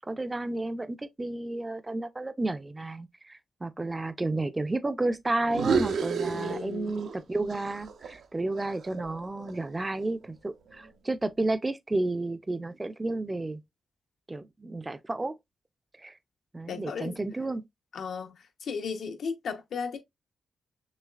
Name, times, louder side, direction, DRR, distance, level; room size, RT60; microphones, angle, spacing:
voice 1, 0.1-13.6 14.3-15.3 16.0-16.2 16.5-17.6, right 2 dB, 20° right, 0.4 m, -32 dB
sound 1, 5.5-7.2 7.5-9.7, right 5 dB, 85° right, 0.7 m, -31 dB
voice 2, 6.3-6.9 16.7-17.1 17.9-18.3 18.6-20.0, left 5 dB, 75° left, 0.9 m, -35 dB
6.2 x 3.1 x 2.4 m
wide cardioid pair, 125°, 0 cm